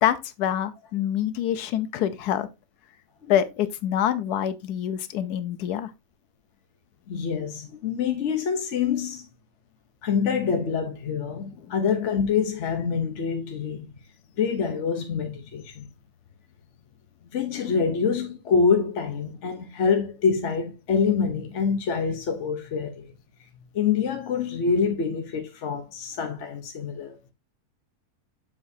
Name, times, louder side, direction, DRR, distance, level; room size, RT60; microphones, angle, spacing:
voice 1, 0.0-2.5 3.3-5.9, left 10 dB, 90° left, 1.2 m, -26 dB
voice 2, 7.1-9.3 10.0-13.9 14.4-15.9 17.3-23.1 23.7-27.2, left 6 dB, 55° left, 1.0 m, -26 dB
7.3 x 6.1 x 2.7 m
omnidirectional pair, 1.6 m